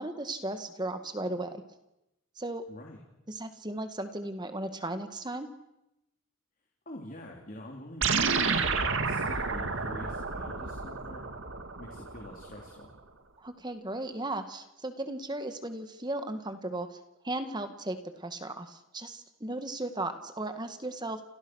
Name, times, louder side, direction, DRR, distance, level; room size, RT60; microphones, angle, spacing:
voice 1, 0.0-1.6 2.4-2.6 3.3-5.5 13.4-17.0 17.2-21.2, right 2 dB, 20° right, 8 dB, 1.9 m, -36 dB
voice 2, 2.7-3.0 6.9-11.2 11.8-12.9, left 1 dB, 40° left, 0 dB, 3.9 m, -45 dB
sound 1, 8.0-12.7, right 4 dB, 70° right, 2.2 m, -30 dB
29.5 x 29.0 x 6.5 m, 0.91 s
head